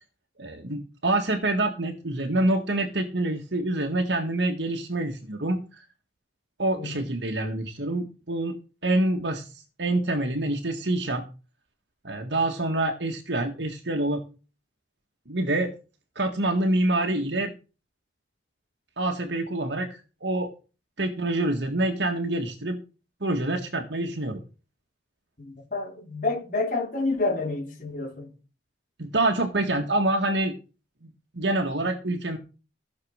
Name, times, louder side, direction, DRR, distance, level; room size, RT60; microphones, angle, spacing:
voice 1, 0.4-5.9 6.6-8.6 8.8-11.2 12.0-14.2 15.3-15.7 16.2-17.5 19.0-20.5 21.0-22.8 23.2-24.4 29.0-30.5 31.0-32.4, right 2 dB, 75° right, 1.8 m, -26 dB
voice 2, 25.4-28.3, left 3 dB, 45° left, 4.2 m, -29 dB
15.5 x 6.8 x 6.5 m
head